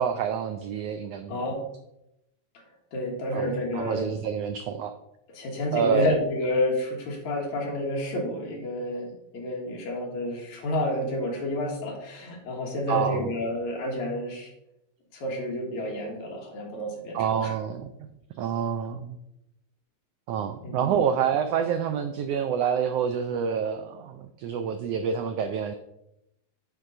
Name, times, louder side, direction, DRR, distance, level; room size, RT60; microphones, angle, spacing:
voice 1, 0.0-1.5 3.3-4.9 5.7-6.1 12.9-13.3 17.1-18.1 18.3-19.2 20.3-25.7, right 7 dB, 90° right, 8 dB, 1.4 m, -27 dB
voice 2, 2.9-4.1 5.3-14.5 15.1-17.5 20.6-21.0, left 1 dB, 75° left, 0 dB, 2.9 m, -30 dB
9.3 x 3.8 x 5.4 m, 0.85 s
omnidirectional pair, 3.3 m